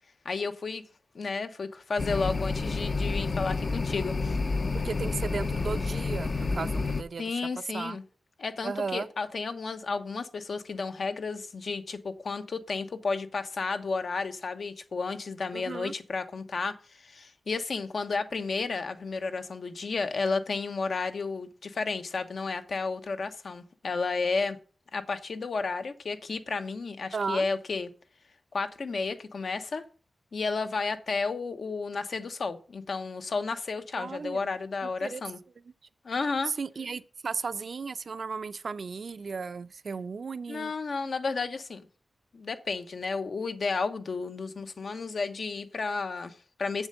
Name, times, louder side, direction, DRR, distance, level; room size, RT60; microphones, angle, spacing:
voice 1, 0.2-0.8 1.1-4.4 7.2-8.0 8.4-24.6 24.9-27.9 28.5-29.8 30.3-35.4 36.0-36.5 40.5-41.8 42.3-46.9, left 4 dB, 70° left, 0.9 m, -32 dB
sound 1, 2.0-7.0, left 3 dB, 45° left, 0.6 m, -29 dB
voice 2, 4.7-7.4 7.7-8.0 8.6-9.1 15.5-15.9 27.1-27.5 33.9-34.5 34.8-35.2 36.5-40.7, right 5 dB, 65° right, 0.5 m, -35 dB
7.5 x 7.2 x 6.6 m
wide cardioid pair, 95°, 0 cm